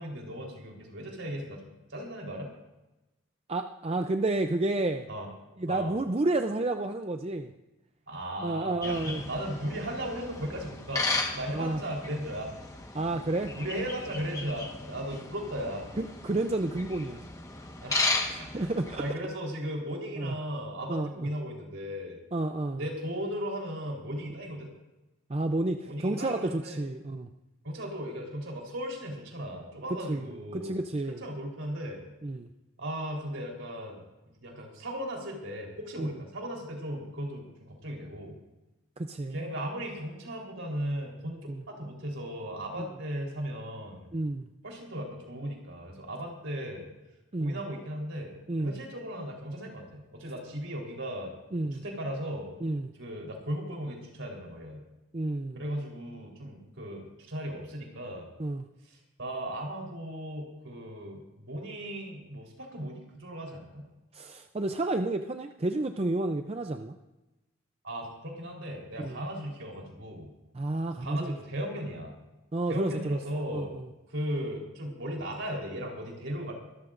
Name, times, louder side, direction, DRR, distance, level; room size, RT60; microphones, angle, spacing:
voice 1, 0.0-2.5 5.1-5.3 5.7-5.9 8.1-11.0 11.3-12.5 13.5-15.8 17.8-22.2 22.8-24.7 25.9-26.8 27.6-30.8 31.1-32.0 32.8-34.0 34.4-38.4 39.3-44.1 44.6-46.9 47.4-51.3 51.7-52.5 53.0-54.8 55.5-58.3 58.8-63.9 67.8-70.3 71.0-72.2 72.7-73.7 74.1-76.5, equal, 65° right, 0 dB, 3.8 m, -37 dB
voice 2, 3.5-5.1 5.6-7.5 8.4-9.2 11.5-11.8 12.9-13.5 16.0-17.2 18.3-19.0 20.2-20.3 20.9-21.3 22.3-22.8 25.3-27.3 30.1-31.2 32.2-32.5 36.0-36.1 39.0-39.4 41.5-41.6 42.8-42.9 44.1-44.5 47.3-47.6 48.5-48.8 51.5-51.8 52.6-52.9 55.1-55.6 58.4-58.7 64.1-66.9 69.0-69.2 70.5-71.3 72.5-73.2 73.5-73.8, right 2 dB, 30° right, 6 dB, 0.5 m, -30 dB
sound 1, 8.8-19.1, left 3 dB, 15° left, 1.3 m, -35 dB
24.0 x 14.0 x 2.5 m, 1.0 s
head